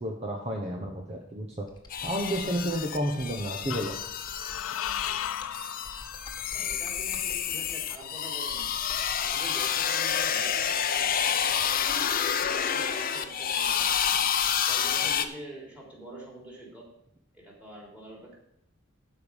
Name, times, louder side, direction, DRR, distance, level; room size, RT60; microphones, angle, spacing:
voice 1, 0.0-1.7 2.0-4.0, equal, 30° right, 1 dB, 1.2 m, -31 dB
Computer keyboard, 1.7-9.8, left 1 dB, 20° left, 1.7 m, -49 dB
sound 1, 1.9-15.3, left 8 dB, 45° left, 0.7 m, -29 dB
sound 2, 2.0-2.8 3.7-6.6, left 10 dB, 80° left, 0.4 m, -37 dB
voice 2, 6.5-8.7 9.2-16.9 17.3-18.3, right 1 dB, 5° right, -3 dB, 3.8 m, -46 dB
12.5 x 5.4 x 6.4 m, 0.79 s
head